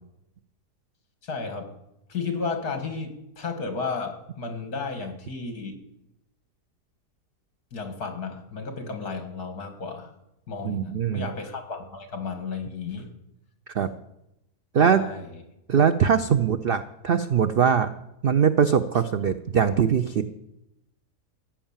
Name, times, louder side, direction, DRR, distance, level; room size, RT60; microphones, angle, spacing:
voice 1, 1.2-1.7 2.1-5.8 7.7-10.1 10.5-13.1 14.8-15.3, left 4 dB, 65° left, 6 dB, 2.5 m, -33 dB
voice 2, 10.6-11.3 13.7-13.9 14.7-15.0 15.7-17.9 18.2-20.3, right 7 dB, 80° right, 11 dB, 0.5 m, -21 dB
15.0 x 9.0 x 7.3 m, 0.87 s
omnidirectional pair, 1.8 m